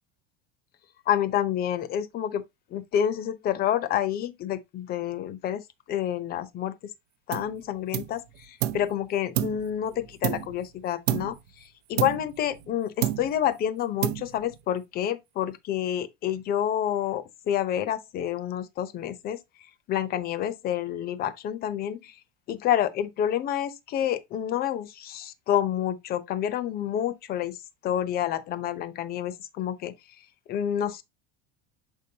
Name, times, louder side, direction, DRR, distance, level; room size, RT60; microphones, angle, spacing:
voice 1, 1.1-2.4 2.7-5.6 5.9-6.7 7.3-19.4 19.9-22.1 22.5-27.6 27.8-29.9 30.5-31.0, left 10 dB, 30° left, 0.7 m, -28 dB
sound 1, 7.3-7.6 7.9-8.9 9.4-10.7 11.1-11.5 12.0-12.7 13.0-13.5 14.0-14.6, right 13 dB, 80° right, 0.8 m, -30 dB
7.2 x 5.4 x 2.8 m
cardioid pair, 170°, 32 cm